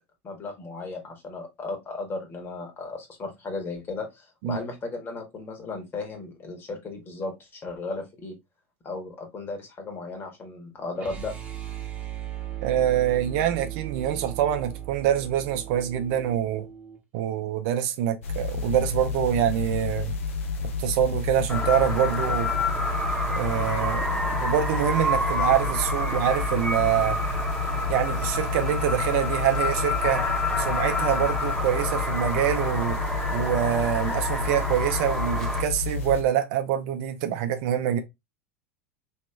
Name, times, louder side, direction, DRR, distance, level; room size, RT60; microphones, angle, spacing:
voice 1, 0.2-8.4 8.8-11.3, left 3 dB, 30° left, 1.6 m, -35 dB
sound 1, 11.0-17.0, right 11 dB, 20° right, 1.3 m, -37 dB
voice 2, 12.6-16.7 17.1-20.2 20.6-22.5 23.3-27.2 27.9-30.3 30.6-33.0 33.3-38.0, right 10 dB, 55° right, 0.6 m, -25 dB
sound 2, 18.2-36.2, left 4 dB, 70° left, 0.9 m, -30 dB
sound 3, 21.5-35.6, left 1 dB, 5° left, 1.2 m, -29 dB
3.1 x 3.1 x 3.3 m
hypercardioid pair, 85°, 7 cm